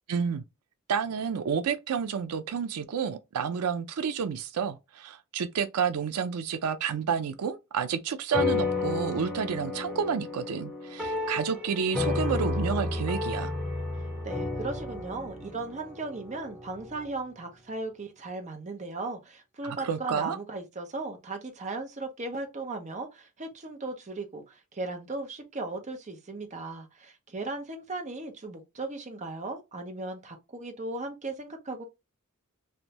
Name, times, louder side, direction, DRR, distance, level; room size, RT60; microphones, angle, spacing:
voice 1, 0.1-0.4 0.9-13.5 19.6-20.4, right 6 dB, 85° right, 0.4 m, -30 dB
sound 1, 8.3-17.1, left 3 dB, 5° right, 1.5 m, -32 dB
voice 2, 14.2-31.8, right 3 dB, 35° right, 0.8 m, -37 dB
3.3 x 2.6 x 2.8 m
head